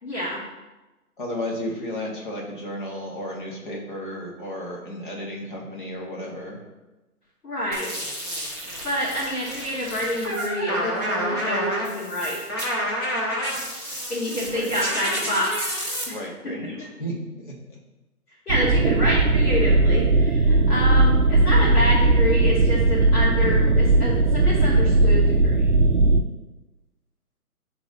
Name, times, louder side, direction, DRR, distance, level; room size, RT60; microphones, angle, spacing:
voice 1, 0.0-0.4 7.4-7.9 8.8-12.4 14.1-15.5 16.1-16.2 16.6-16.7 18.5-25.7, equal, 70° left, -8 dB, 2.3 m, -27 dB
voice 2, 1.2-6.6 14.5-14.7 16.1-17.8, equal, 30° left, -2 dB, 1.4 m, -33 dB
sound 1, 7.7-16.0, equal, 15° left, 0.9 m, -29 dB
sound 2, 18.5-26.2, right 2 dB, 50° right, 0.6 m, -18 dB
8.0 x 4.0 x 4.0 m, 1.1 s
hypercardioid pair, 165°, 47 cm